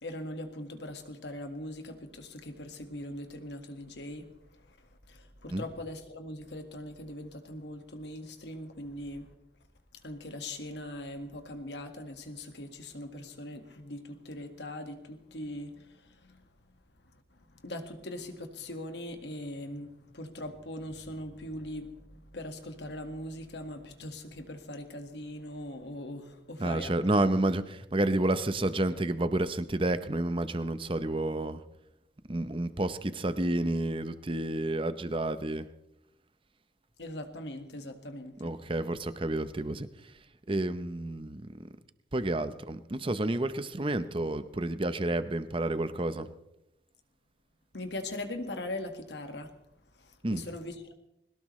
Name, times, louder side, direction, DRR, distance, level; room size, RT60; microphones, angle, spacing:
voice 1, 0.0-4.3 5.1-9.3 10.0-16.5 17.5-27.0 37.0-38.5 47.7-49.5 50.0-50.9, left 1 dB, 70° left, 6 dB, 1.8 m, -41 dB
voice 2, 26.6-31.6 32.3-35.7 38.4-40.1 40.5-41.7 42.1-46.3 50.2-50.4, right 1 dB, 30° right, 12 dB, 0.8 m, -30 dB
21.5 x 18.5 x 3.2 m, 0.87 s
head